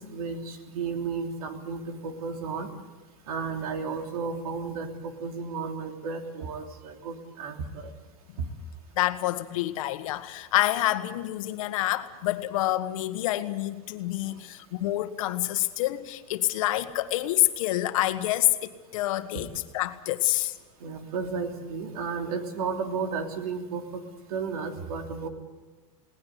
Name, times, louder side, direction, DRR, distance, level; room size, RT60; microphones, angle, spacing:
voice 1, 0.0-2.7 3.3-7.9 8.4-8.5 20.8-24.0 24.3-25.3, right 5 dB, 85° right, 4 dB, 3.3 m, -33 dB
voice 2, 9.0-19.5 19.7-20.5, left 15 dB, 70° left, 9 dB, 1.6 m, -27 dB
21.5 x 18.5 x 8.2 m, 1.3 s
supercardioid pair, 155°, 18 cm